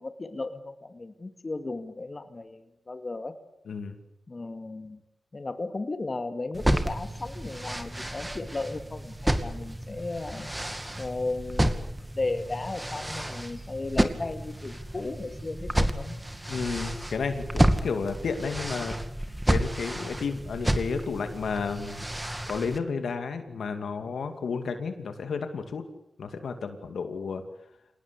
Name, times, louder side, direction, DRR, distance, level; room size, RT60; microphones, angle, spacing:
voice 1, 0.0-3.3 4.3-5.0 5.3-10.5 11.0-11.9 12.2-16.1, left 2 dB, 40° left, 8 dB, 2.3 m, -35 dB
voice 2, 3.7-4.0 16.5-19.0 19.5-22.1 22.5-25.8 26.2-27.4, left 5 dB, 85° left, 7 dB, 2.6 m, -32 dB
sound 1, 6.5-22.8, right 1 dB, 15° right, 2.4 m, -30 dB
26.0 x 19.0 x 8.4 m, 0.83 s
cardioid pair, 60°, 0 cm